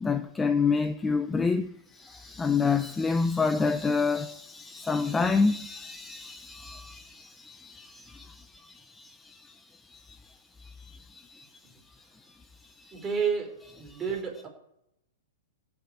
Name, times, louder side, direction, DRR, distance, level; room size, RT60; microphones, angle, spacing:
voice 1, 0.0-11.5 12.8-13.0 13.9-14.0, left 4 dB, 10° left, 0.6 m, -29 dB
voice 2, 12.9-14.5, right 6 dB, 15° right, 4.6 m, -31 dB
15.5 x 7.3 x 9.1 m
hypercardioid pair, 150°, 0 cm